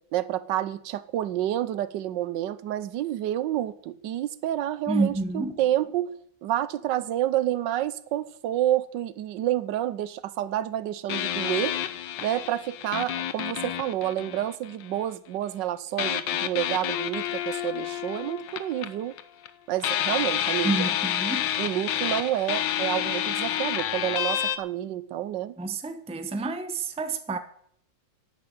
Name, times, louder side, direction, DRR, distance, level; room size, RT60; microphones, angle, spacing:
voice 1, 0.1-6.1 6.4-11.8 12.2-19.2 19.7-20.9 21.6-25.5, right 12 dB, 85° right, 1.4 m, -29 dB
voice 2, 4.9-5.5 20.6-21.5 25.6-27.4, right 3 dB, 5° right, 0.6 m, -29 dB
sound 1, 11.1-15.0 16.0-19.5 19.8-24.6, left 11 dB, 85° left, 1.5 m, -29 dB
11.5 x 8.7 x 8.7 m
omnidirectional pair, 1.9 m